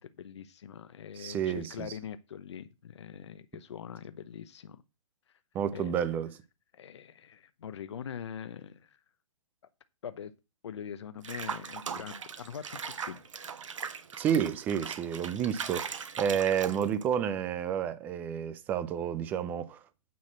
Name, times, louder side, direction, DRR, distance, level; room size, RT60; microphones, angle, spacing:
voice 1, 0.0-4.8 5.7-6.0 6.7-9.0 10.0-10.3 10.6-13.2, left 8 dB, 55° left, 0.9 m, -43 dB
voice 2, 1.2-1.9 5.5-6.3 14.2-19.8, right 8 dB, 10° right, 0.4 m, -30 dB
Water / Bathtub (filling or washing), 11.2-17.1, right 6 dB, 70° right, 1.2 m, -39 dB
9.4 x 4.1 x 7.3 m
hypercardioid pair, 150°, 17 cm